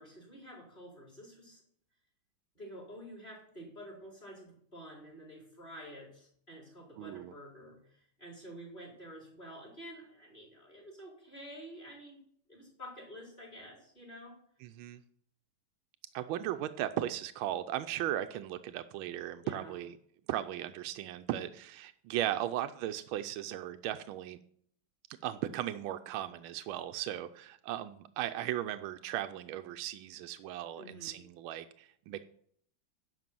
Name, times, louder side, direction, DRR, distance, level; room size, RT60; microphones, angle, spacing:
voice 1, 0.0-1.6 2.5-12.2 12.5-14.4 19.4-19.8 30.8-31.1, equal, 20° left, -2 dB, 4.4 m, -49 dB
voice 2, 7.0-7.3 14.6-15.0 16.1-19.9 20.3-24.4 25.2-32.2, right 12 dB, 80° right, 8 dB, 1.4 m, -37 dB
11.0 x 5.6 x 7.5 m, 0.63 s
omnidirectional pair, 2.3 m